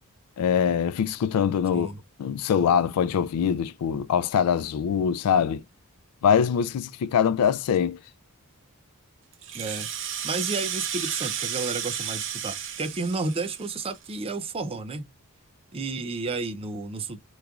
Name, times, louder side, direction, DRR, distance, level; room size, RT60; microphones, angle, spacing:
voice 1, 0.4-1.9 2.2-5.6 6.2-8.0, left 7 dB, 80° left, 0.3 m, -23 dB
Rattle (instrument), 9.3-14.1, right 8 dB, 60° right, 0.8 m, -33 dB
voice 2, 9.5-9.9 10.2-15.1 15.7-17.2, right 3 dB, 25° right, 0.5 m, -31 dB
3.5 x 3.0 x 2.3 m
head